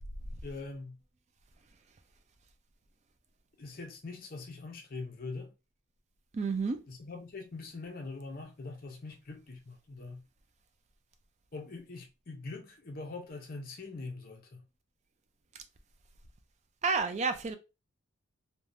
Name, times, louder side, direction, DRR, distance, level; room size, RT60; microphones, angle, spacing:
voice 1, 0.4-1.0 3.6-5.5 6.9-10.2 11.5-14.6, left 3 dB, 45° left, 0.6 m, -43 dB
voice 2, 6.3-6.8 16.8-17.6, right 4 dB, 35° right, 0.3 m, -30 dB
3.2 x 2.2 x 2.5 m
head